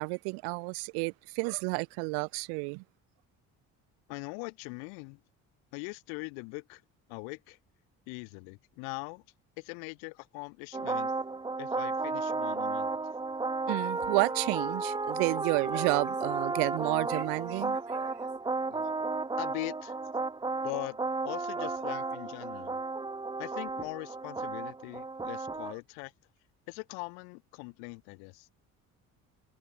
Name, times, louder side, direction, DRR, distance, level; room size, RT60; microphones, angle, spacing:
voice 1, 0.0-2.8 13.7-18.1 21.6-21.7, right 40 dB or more, 85° right, 0.6 m, -31 dB
voice 2, 4.1-5.2 5.7-6.8 7.1-7.6 8.1-9.2 9.6-11.1 11.6-13.0 15.1-15.3 18.7-19.9 20.6-21.0 21.2-22.8 23.4-26.1 26.7-28.5, left 40 dB or more, 85° left, 1.4 m, -41 dB
sound 1, 10.7-25.7, right 3 dB, 10° right, 0.7 m, -33 dB
supercardioid pair, 70°, 38 cm